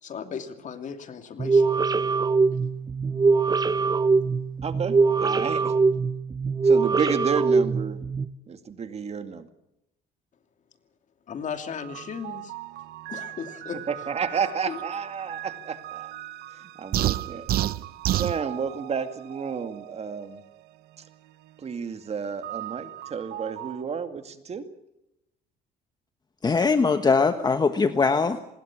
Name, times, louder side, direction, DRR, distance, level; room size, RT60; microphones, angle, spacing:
voice 1, 0.0-1.7 11.3-12.5 13.1-13.9 14.7-14.8, left 7 dB, 45° left, 7 dB, 2.8 m, -36 dB
sound 1, 1.4-8.3, right 4 dB, 25° right, 1.0 m, -22 dB
voice 2, 4.6-5.7 6.6-8.0 8.5-9.5 13.9-16.2 16.5-17.5 18.1-20.4 21.6-24.7, right 6 dB, 40° right, 8 dB, 2.3 m, -31 dB
sound 2, 11.8-23.8, right 15 dB, 80° right, 1.1 m, -41 dB
sound 3, 16.9-18.4, right 13 dB, 60° right, 0.7 m, -25 dB
voice 3, 26.4-28.4, left 4 dB, 25° left, 9 dB, 1.2 m, -21 dB
26.0 x 20.5 x 6.1 m, 0.86 s
cardioid pair, 110°, 17 cm